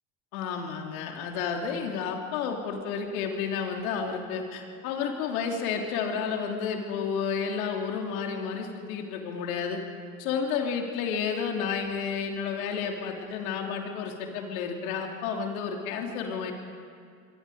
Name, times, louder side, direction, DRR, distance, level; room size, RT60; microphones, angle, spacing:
voice 1, 0.3-9.8 10.2-16.5, left 6 dB, 75° left, 2 dB, 3.1 m, -31 dB
25.0 x 24.5 x 5.0 m, 2.2 s
hypercardioid pair, 70°, 43 cm